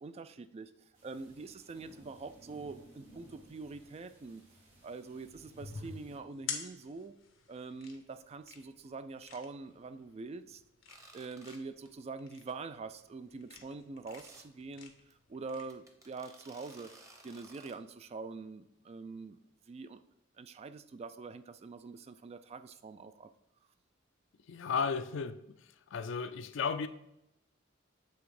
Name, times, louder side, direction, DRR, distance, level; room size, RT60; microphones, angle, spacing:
voice 1, 0.0-0.7 1.0-4.4 4.8-7.1 7.5-10.6 11.1-16.9 17.2-19.4 19.7-20.0 20.4-23.3, right 4 dB, 30° right, 12 dB, 0.3 m, -45 dB
sound 1, 0.9-6.2, right 1 dB, 90° right, 1.9 m, -59 dB
sound 2, 5.4-15.7, left 6 dB, 90° left, 1.0 m, -48 dB
sound 3, 10.9-11.6 11.8-12.1 12.5-12.6 12.9-13.0 14.1-14.4 15.1-15.2 15.7-17.8, right 2 dB, 15° right, 0.8 m, -56 dB
voice 2, 24.5-25.6 25.9-26.9, left 5 dB, 65° left, 11 dB, 0.4 m, -34 dB
7.2 x 3.4 x 4.8 m, 0.82 s
head